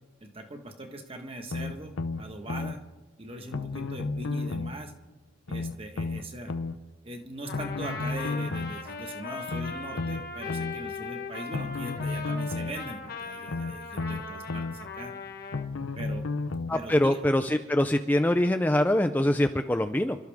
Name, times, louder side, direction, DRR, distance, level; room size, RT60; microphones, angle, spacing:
voice 1, 0.2-2.8 3.2-4.9 5.5-6.5 7.0-15.1 15.9-16.3 16.7-17.2, right 1 dB, 25° right, 4 dB, 1.5 m, -40 dB
sound 1, 1.5-2.8 3.5-4.8 5.5-6.8 7.5-8.8 9.5-10.8 11.5-12.8 13.5-14.8 15.5-16.8 17.5-17.6, left 3 dB, 80° left, 0.7 m, -32 dB
Trumpet, 7.4-15.7, left 4 dB, 45° left, 1.3 m, -39 dB
voice 2, 16.7-20.2, left 1 dB, 10° left, 7 dB, 0.5 m, -24 dB
28.5 x 13.0 x 3.6 m, 1.2 s
head